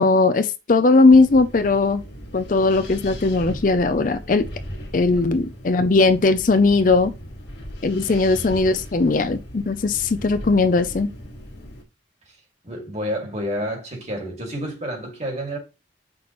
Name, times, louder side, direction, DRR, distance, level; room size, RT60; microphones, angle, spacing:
voice 1, 0.0-2.0 2.3-4.5 4.9-7.1 7.8-11.1, left 3 dB, 45° left, 0.5 m, -18 dB
Wind, 1.1-11.8, equal, 65° left, 1.9 m, -38 dB
voice 2, 12.6-15.6, equal, 35° right, 2.3 m, -30 dB
7.7 x 6.0 x 3.0 m
head